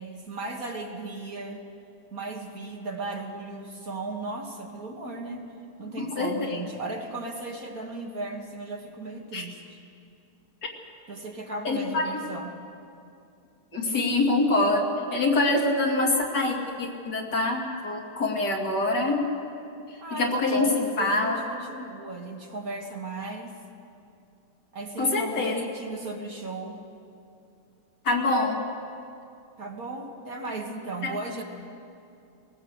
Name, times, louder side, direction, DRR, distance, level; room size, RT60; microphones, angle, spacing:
voice 1, 0.0-1.7 2.1-5.5 5.8-9.8 11.1-12.6 20.0-23.6 24.7-26.9 29.6-31.4, right 2 dB, 45° right, 1 dB, 1.9 m, -36 dB
voice 2, 6.0-6.6 9.3-9.5 11.6-12.1 13.7-19.3 20.1-21.4 25.0-25.6 28.0-28.6 31.0-31.1, left 2 dB, 55° left, -1 dB, 2.9 m, -25 dB
21.0 x 18.5 x 8.0 m, 2.6 s
omnidirectional pair, 2.2 m